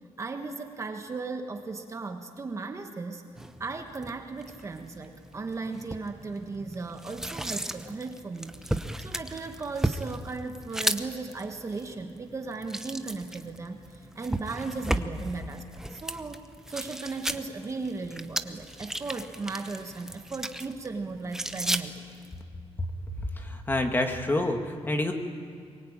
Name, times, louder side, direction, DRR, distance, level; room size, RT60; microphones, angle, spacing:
voice 1, 0.2-3.2 3.6-16.4 16.7-22.0, right 3 dB, 30° right, 5 dB, 1.5 m, -36 dB
sound 1, 3.4-22.4, right 1 dB, 5° right, 0.9 m, -36 dB
voice 2, 23.4-25.1, left 1 dB, 20° left, 4 dB, 2.3 m, -27 dB
23.0 x 23.0 x 8.9 m, 2.2 s
wide cardioid pair, 150°, 11 cm